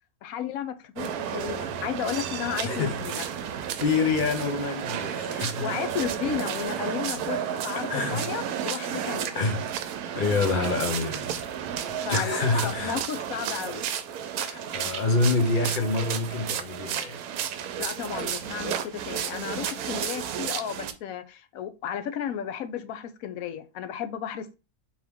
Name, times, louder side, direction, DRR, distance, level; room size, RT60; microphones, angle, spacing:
voice 1, 0.2-3.2 5.3-9.4 12.1-13.8 17.8-24.6, left 9 dB, 75° left, 1.0 m, -33 dB
sound 1, 1.0-20.9, right 9 dB, 80° right, 1.1 m, -32 dB
voice 2, 2.6-2.9 3.8-5.7 7.8-8.3 9.3-9.7 10.1-11.3 12.1-13.0 14.4-17.2, left 3 dB, 50° left, 0.6 m, -27 dB
4.4 x 2.9 x 3.5 m
omnidirectional pair, 1.6 m